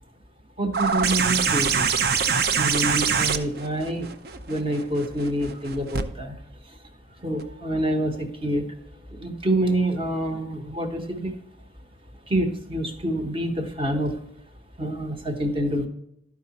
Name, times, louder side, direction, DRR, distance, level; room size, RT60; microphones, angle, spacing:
voice 1, 0.6-1.9 2.6-4.1 4.5-6.4 6.6-6.8 7.2-8.7 9.1-11.3 12.3-14.2 14.8-15.9, right 1 dB, 30° right, 5 dB, 1.0 m, -27 dB
sound 1, 0.7-6.0 7.4-7.5, right 6 dB, 55° right, 0.5 m, -24 dB
12.0 x 4.8 x 4.1 m, 0.77 s
head